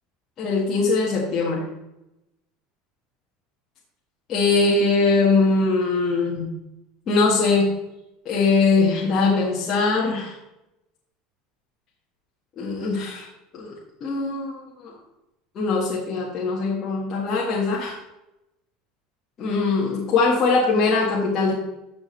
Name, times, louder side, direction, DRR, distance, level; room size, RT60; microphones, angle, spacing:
voice 1, 0.4-1.6 4.3-6.5 7.1-7.7 8.2-10.3 12.6-13.3 13.5-13.7 14.0-14.9 15.5-18.0 19.4-21.5, left 3 dB, 30° left, -4 dB, 1.6 m, -21 dB
13.5 x 6.1 x 3.2 m, 0.91 s
cardioid pair, 165°, 0 cm